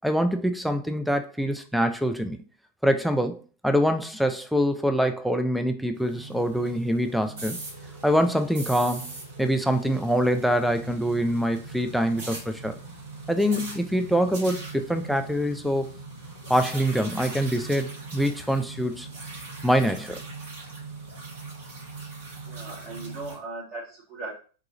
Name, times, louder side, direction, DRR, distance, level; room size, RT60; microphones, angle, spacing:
voice 1, 0.0-2.4 2.8-7.6 8.0-9.1 9.4-12.8 13.3-15.9 16.5-19.1 19.6-20.2, equal, ahead, 0.4 m, -24 dB
sound 1, 5.9-23.4, right 3 dB, 60° right, 1.2 m, -40 dB
voice 2, 22.4-24.3, right 2 dB, 35° right, 1.1 m, -38 dB
3.8 x 2.4 x 2.9 m
figure-of-eight pair, 90°, 0 cm